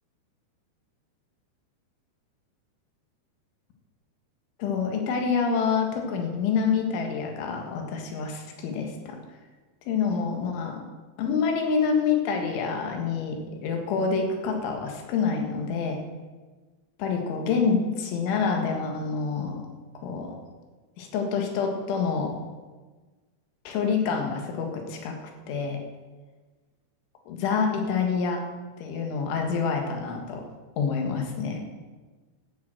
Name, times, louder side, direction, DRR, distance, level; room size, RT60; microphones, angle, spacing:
voice 1, 4.6-9.2 9.9-10.8 11.2-16.0 17.0-19.7 20.0-20.4 21.0-22.4 23.7-25.2 25.5-25.8 27.3-28.5 28.8-30.5 30.8-31.6, left 5 dB, 80° left, 3 dB, 4.1 m, -27 dB
14.0 x 7.6 x 7.8 m, 1.3 s
omnidirectional pair, 5.4 m